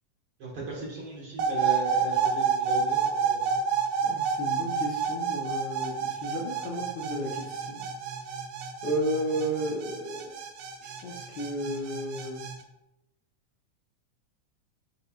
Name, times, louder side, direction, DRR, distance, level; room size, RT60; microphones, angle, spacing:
voice 1, 0.4-3.6, right 2 dB, 50° right, -5 dB, 2.4 m, -37 dB
sound 1, 1.4-12.6, right 6 dB, 85° right, 2.2 m, -29 dB
voice 2, 4.0-7.8 8.8-10.4 10.8-12.4, equal, 70° left, -4 dB, 1.0 m, -33 dB
10.5 x 4.0 x 2.4 m, 0.91 s
omnidirectional pair, 3.4 m